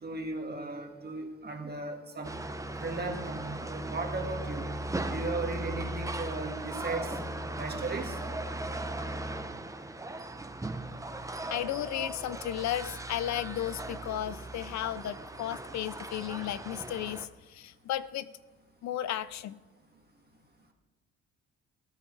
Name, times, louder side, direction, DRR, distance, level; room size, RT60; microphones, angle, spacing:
voice 1, 0.0-2.4 2.8-4.7 5.1-7.2 7.6-8.2, right 3 dB, 30° right, 2 dB, 1.9 m, -36 dB
sound 1, 2.2-17.3, right 2 dB, 10° right, 0.7 m, -38 dB
voice 2, 11.5-18.3 18.8-19.6, left 12 dB, 65° left, 16 dB, 0.5 m, -34 dB
19.0 x 9.7 x 3.3 m, 1.3 s
cardioid pair, 90°, 30 cm